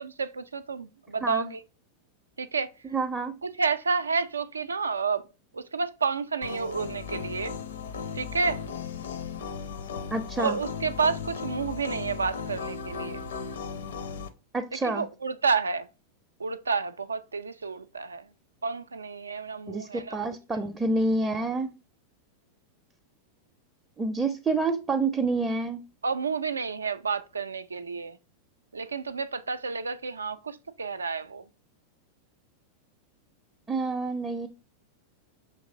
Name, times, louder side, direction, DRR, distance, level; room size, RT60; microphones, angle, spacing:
voice 1, 0.0-1.6 2.4-2.7 3.4-5.3 5.5-7.5 8.1-8.6 10.4-13.2 14.8-15.9 16.4-18.3 18.6-20.4 26.0-28.2 28.7-31.4, right 5 dB, 75° right, 0.3 m, -30 dB
voice 2, 2.9-3.3 10.1-10.6 14.5-15.1 19.7-21.7 24.0-25.8 33.7-34.5, right 3 dB, 15° right, 0.5 m, -28 dB
sound 1, 6.4-14.3, left 6 dB, 65° left, 0.5 m, -36 dB
6.3 x 3.0 x 2.7 m
figure-of-eight pair, 90°, 0 cm